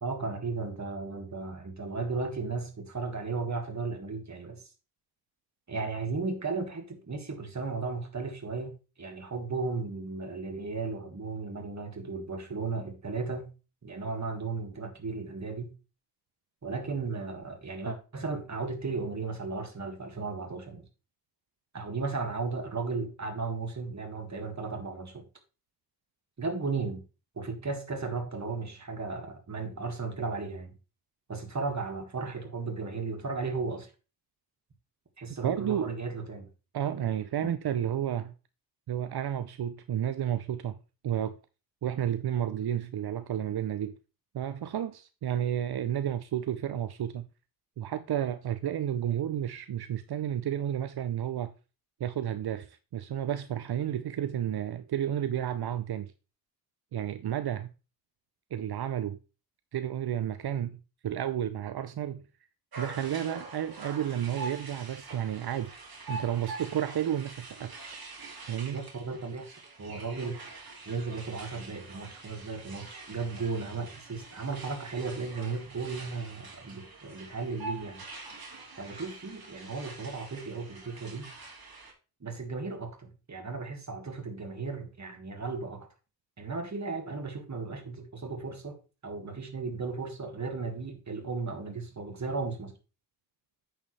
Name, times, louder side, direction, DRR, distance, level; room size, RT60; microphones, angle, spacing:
voice 1, 0.0-4.6 5.7-13.5 13.8-15.7 16.6-20.8 21.7-25.3 26.4-27.0 27.4-30.7 31.3-33.9 35.2-36.5 37.4-37.5 68.7-70.4 70.9-78.0 78.8-81.3 82.2-85.9 86.4-88.8 89.0-92.7, right 4 dB, 50° right, 1.9 m, -35 dB
voice 2, 35.4-35.9 36.7-38.3 38.9-40.8 41.0-41.3 41.8-44.0 44.3-47.3 47.8-51.5 52.0-56.1 56.9-57.7 58.5-59.2 59.7-62.2 62.8-65.7 66.1-67.8 68.5-68.9, right 10 dB, 85° right, 0.6 m, -31 dB
sound 1, 62.7-81.9, right 3 dB, 70° right, 2.4 m, -45 dB
8.8 x 6.7 x 3.2 m
wide cardioid pair, 90°, 37 cm